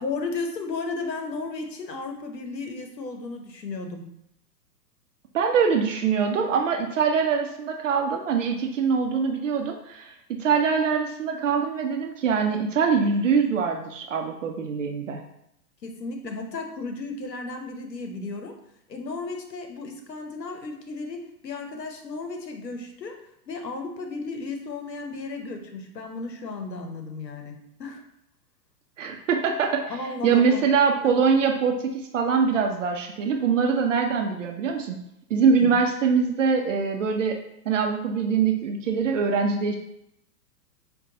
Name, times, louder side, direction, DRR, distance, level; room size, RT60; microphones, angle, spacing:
voice 1, 0.0-4.0 15.8-18.5 18.9-23.2 23.5-28.0 29.9-30.7 31.0-31.3 35.6-35.7, left 3 dB, 85° left, 4 dB, 0.8 m, -34 dB
voice 2, 5.3-15.2 29.0-29.9 30.2-35.0 35.3-37.4 37.7-39.8, right 5 dB, 50° right, 3 dB, 0.5 m, -23 dB
5.0 x 2.2 x 2.7 m, 0.79 s
figure-of-eight pair, 110°, 49 cm